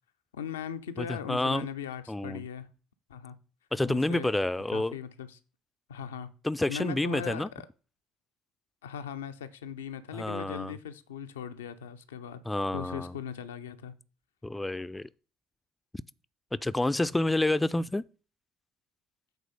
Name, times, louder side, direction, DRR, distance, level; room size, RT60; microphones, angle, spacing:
voice 1, 0.3-2.7 3.1-3.4 3.9-4.3 4.7-5.4 5.9-6.3 6.7-7.7 8.8-12.4 12.7-14.0, left 8 dB, 80° left, 0.5 m, -39 dB
voice 2, 1.0-1.7 2.1-2.4 3.7-5.0 6.4-7.5 10.1-10.8 12.5-13.1 14.4-15.1 16.5-18.0, left 2 dB, 15° left, 0.4 m, -29 dB
8.1 x 3.7 x 5.1 m
hypercardioid pair, 55°, 0 cm